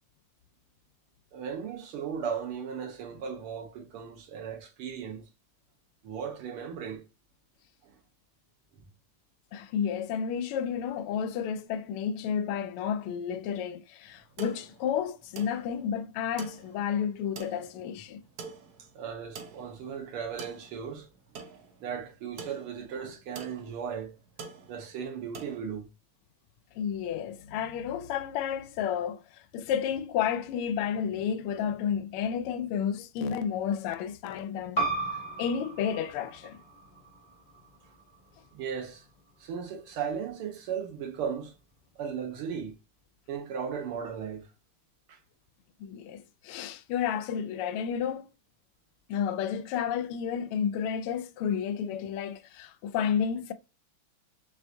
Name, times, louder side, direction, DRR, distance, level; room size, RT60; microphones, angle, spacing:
voice 1, 1.3-5.2 6.0-7.1 7.8-8.0 19.0-21.1 21.8-24.2 24.7-25.9 38.5-39.1 39.4-41.5 42.0-42.8 43.3-44.5 45.1-45.2, right 7 dB, 80° right, 1.9 m, -36 dB
voice 2, 9.5-18.2 26.8-34.8 35.4-36.6 45.8-48.3 49.1-53.5, left 8 dB, 85° left, 1.5 m, -31 dB
sound 1, 14.1-25.6, right 5 dB, 65° right, 1.0 m, -47 dB
sound 2, 34.7-39.9, right 3 dB, 35° left, 0.7 m, -37 dB
4.7 x 3.3 x 2.6 m
omnidirectional pair, 2.4 m